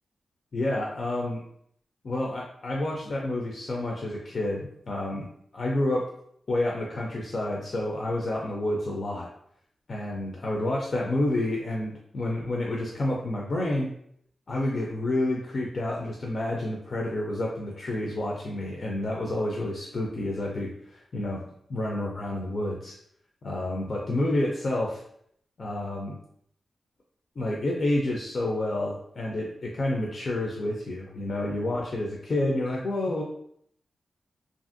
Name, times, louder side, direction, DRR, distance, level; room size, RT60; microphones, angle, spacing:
voice 1, 0.5-1.4 2.0-5.3 5.5-6.1 6.5-9.3 9.9-13.9 14.5-21.4 21.7-23.0 23.4-25.0 25.6-26.2 27.4-33.2, left 1 dB, 50° left, -2 dB, 0.4 m, -29 dB
2.9 x 2.5 x 2.5 m, 0.68 s
wide cardioid pair, 105°, 0 cm